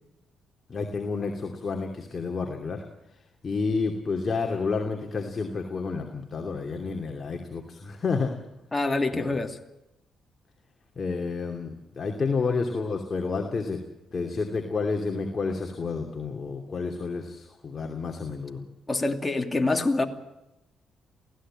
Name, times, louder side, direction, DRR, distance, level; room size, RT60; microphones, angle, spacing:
voice 1, 0.7-2.8 3.4-8.3 9.1-9.4 11.0-13.8 14.1-18.6, left 4 dB, 35° left, 2.7 m, -30 dB
voice 2, 8.7-9.6 18.9-20.1, left 2 dB, 20° left, 2.6 m, -25 dB
23.5 x 16.5 x 8.9 m
cardioid pair, 90°, 0 cm